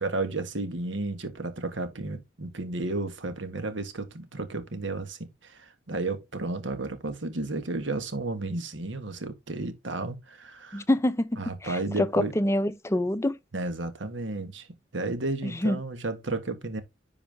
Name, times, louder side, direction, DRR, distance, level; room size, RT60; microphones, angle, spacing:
voice 1, 0.0-10.8 11.4-12.3 13.5-14.7 14.9-16.8, right 2 dB, 85° right, 1.6 m, -32 dB
voice 2, 10.7-13.4 15.4-15.8, left 1 dB, 15° left, 0.5 m, -26 dB
10.5 x 4.8 x 3.5 m
head